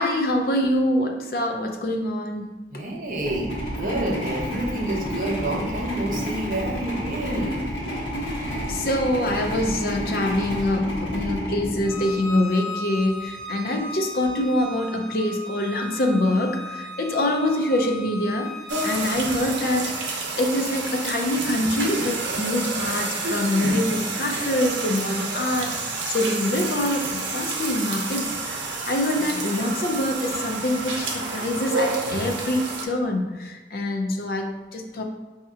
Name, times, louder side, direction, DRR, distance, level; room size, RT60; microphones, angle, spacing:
voice 1, 0.0-2.5 8.6-18.5 18.8-35.0, left 1 dB, 55° left, 3 dB, 0.5 m, -25 dB
voice 2, 2.7-7.6, right 1 dB, 45° right, -1 dB, 0.6 m, -28 dB
sound 1, 3.1-12.5, equal, 85° left, 1.3 m, -30 dB
Bowed string instrument, 11.8-19.1, left 2 dB, ahead, 0.6 m, -36 dB
sound 2, 18.7-32.9, right 3 dB, 85° right, 0.6 m, -29 dB
5.3 x 2.8 x 2.4 m, 1.2 s
head